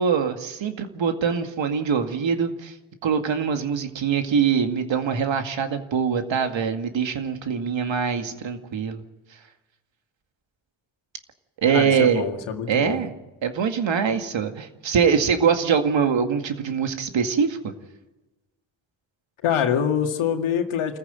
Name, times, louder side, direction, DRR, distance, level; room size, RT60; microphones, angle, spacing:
voice 1, 0.0-2.7 3.0-9.0 11.6-12.2 12.7-13.1 13.4-17.7, right 6 dB, 70° right, 6 dB, 2.3 m, -23 dB
voice 2, 11.7-13.0 19.4-21.0, left 8 dB, 85° left, 4 dB, 2.1 m, -25 dB
27.0 x 15.0 x 9.2 m, 1.1 s
supercardioid pair, 45°, 47 cm